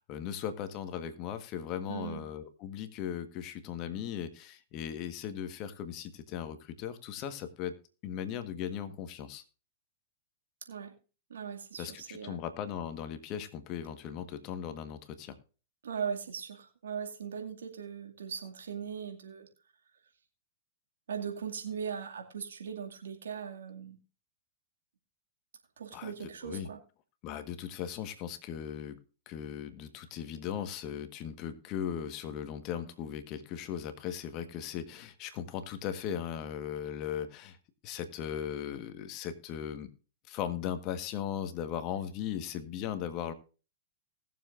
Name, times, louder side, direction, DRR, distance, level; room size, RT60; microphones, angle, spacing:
voice 1, 0.0-7.7 8.0-9.4 11.8-15.4 25.9-26.7 27.2-29.0 29.3-37.6 37.8-39.9 40.3-43.3, left 9 dB, 45° left, 10 dB, 1.5 m, -38 dB
voice 2, 1.9-2.2 10.7-10.9 11.3-12.4 15.8-19.5 21.1-24.0 25.8-26.8, right 7 dB, 80° right, 3 dB, 2.3 m, -39 dB
20.0 x 7.2 x 2.6 m, 0.35 s
hypercardioid pair, 110°, 0 cm